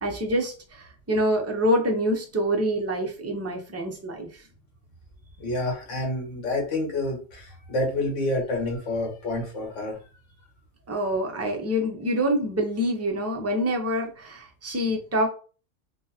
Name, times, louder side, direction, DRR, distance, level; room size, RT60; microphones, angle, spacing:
voice 1, 0.0-4.3 10.9-15.3, equal, 20° right, 2 dB, 0.4 m, -26 dB
voice 2, 5.4-10.0, left 2 dB, 75° left, 0 dB, 1.5 m, -28 dB
3.8 x 2.4 x 2.7 m, 0.37 s
omnidirectional pair, 1.3 m